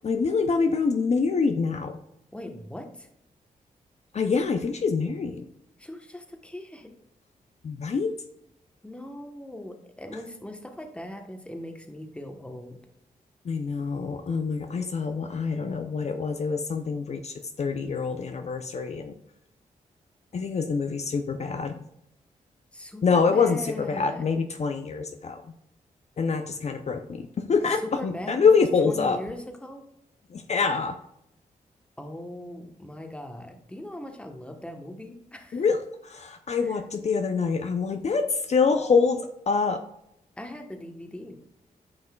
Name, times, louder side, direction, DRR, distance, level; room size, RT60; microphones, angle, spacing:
voice 1, 0.0-2.0 4.1-5.4 7.6-8.1 13.4-19.1 20.3-21.8 23.0-25.4 26.2-29.2 30.3-31.0 35.5-39.8, left 5 dB, 50° left, 6 dB, 0.6 m, -25 dB
voice 2, 2.3-3.1 5.8-6.9 8.8-12.8 22.7-24.2 28.0-29.8 32.0-35.6 36.6-36.7 40.4-41.4, left 1 dB, 10° left, 5 dB, 1.1 m, -40 dB
9.5 x 5.4 x 2.3 m, 0.80 s
cardioid pair, 80°, 14 cm